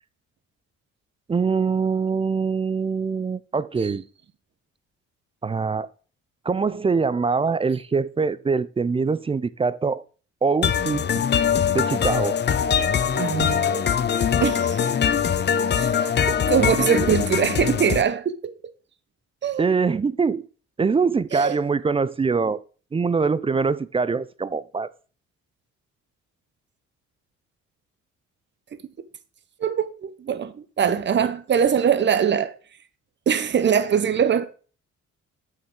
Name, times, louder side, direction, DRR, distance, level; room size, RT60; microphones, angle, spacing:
voice 1, 1.3-4.0 5.4-5.9 6.5-10.0 10.4-11.0 11.7-12.4 19.6-20.4 20.8-22.6 22.9-24.9, right 5 dB, 20° right, 0.4 m, -23 dB
sound 1, 10.6-18.0, left 8 dB, 35° left, 0.5 m, -22 dB
voice 2, 13.1-13.9 14.4-14.8 15.8-15.9 16.3-18.5 19.4-19.7 21.3-21.6 29.6-32.5 33.3-34.5, right 7 dB, 35° right, 0.8 m, -22 dB
8.4 x 6.5 x 3.7 m
cardioid pair, 90°, 30 cm